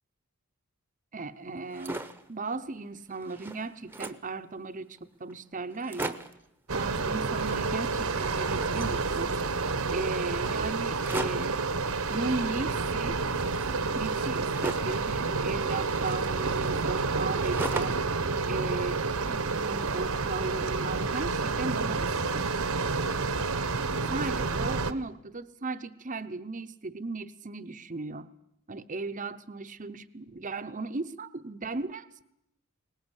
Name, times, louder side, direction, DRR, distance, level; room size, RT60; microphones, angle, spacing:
voice 1, 1.1-2.0 2.3-6.2 6.7-9.4 9.9-11.6 12.1-13.2 13.9-18.1 18.5-19.0 19.3-22.5 24.0-28.3 28.7-32.2, right 3 dB, 35° right, 10 dB, 0.8 m, -36 dB
sound 1, 1.5-2.3 2.8-2.9 3.1-4.3 5.0-5.1 5.3-5.4 5.7-6.5 7.2-8.0 8.2-9.5 10.9-11.6 12.5-15.0 15.8-18.1 18.5-19.4, right 2 dB, 10° right, 0.9 m, -40 dB
sound 2, 6.7-24.9, right 4 dB, 70° right, 1.2 m, -29 dB
23.0 x 19.5 x 8.1 m, 0.81 s
head